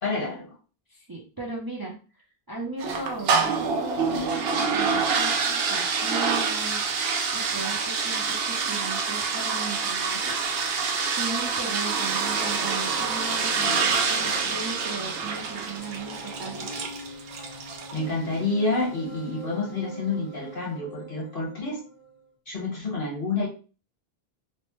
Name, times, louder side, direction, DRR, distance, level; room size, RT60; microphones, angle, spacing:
voice 1, 0.0-0.5 17.9-21.8 22.5-23.5, left 3 dB, 60° left, -3 dB, 1.4 m, -28 dB
voice 2, 0.9-2.0 2.5-6.9 7.3-10.4 11.1-16.7, right 3 dB, 30° right, -3 dB, 0.5 m, -37 dB
sound 1, 2.8-18.1, right 5 dB, 75° right, 0.8 m, -26 dB
sound 2, 15.8-22.3, equal, 35° left, 0.7 m, -44 dB
3.1 x 2.1 x 3.0 m, 0.36 s
omnidirectional pair, 1.0 m